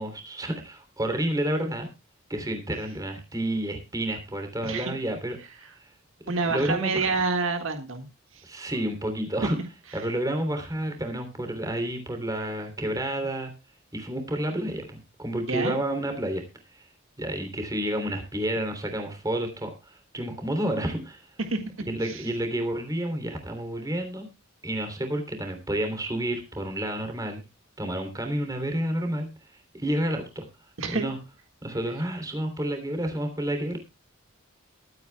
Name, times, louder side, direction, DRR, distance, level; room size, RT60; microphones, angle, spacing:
voice 1, 0.0-1.9 2.3-5.4 5.7-5.9 6.4-7.1 8.4-9.6 9.9-13.5 13.9-16.4 16.7-16.9 17.2-21.3 21.9-24.3 24.6-27.4 27.8-30.4 30.9-31.2 31.6-33.8, right 1 dB, 15° right, 5 dB, 3.1 m, -30 dB
voice 2, 4.6-5.0 6.3-8.1 8.3-8.4 15.5-15.8 21.5-21.6 22.0-22.2 30.8-31.1, right 4 dB, 70° right, 6 dB, 1.8 m, -27 dB
22.0 x 9.2 x 2.3 m, 0.27 s
head